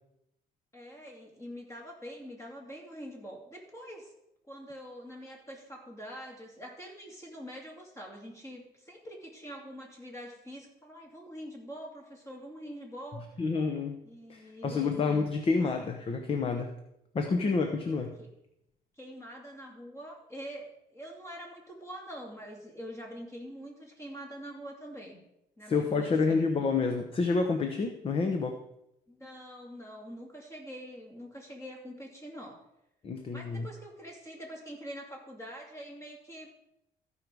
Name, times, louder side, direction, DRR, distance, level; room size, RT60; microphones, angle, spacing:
voice 1, 0.7-4.1 4.5-13.2 14.0-14.9 19.0-25.2 25.6-26.4 29.1-32.6 33.2-36.5, equal, 15° left, 0 dB, 2.6 m, -45 dB
voice 2, 13.4-14.0 14.3-16.7 17.1-18.2 25.6-28.6 33.0-33.7, left 4 dB, 35° left, 6 dB, 0.9 m, -29 dB
14.5 x 5.5 x 4.7 m, 0.83 s
cardioid pair, 110°, 17 cm